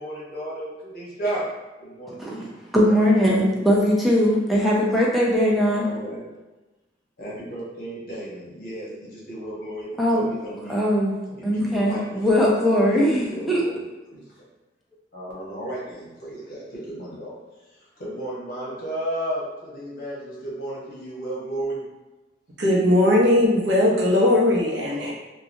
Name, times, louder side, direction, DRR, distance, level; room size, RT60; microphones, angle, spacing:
voice 1, 0.0-1.4 1.8-2.5 2.8-3.2 5.7-6.2 7.2-10.8 11.3-12.5 12.9-13.8 14.1-14.2 15.1-17.3 18.0-21.8 24.8-25.1, right 1 dB, 55° left, -6 dB, 1.1 m, -34 dB
voice 2, 2.7-5.9 10.0-10.3 10.7-11.2 11.4-13.6, equal, ahead, -5 dB, 0.5 m, -20 dB
voice 3, 22.6-25.1, left 1 dB, 80° right, -4 dB, 0.7 m, -19 dB
3.0 x 2.3 x 2.6 m, 1.1 s
head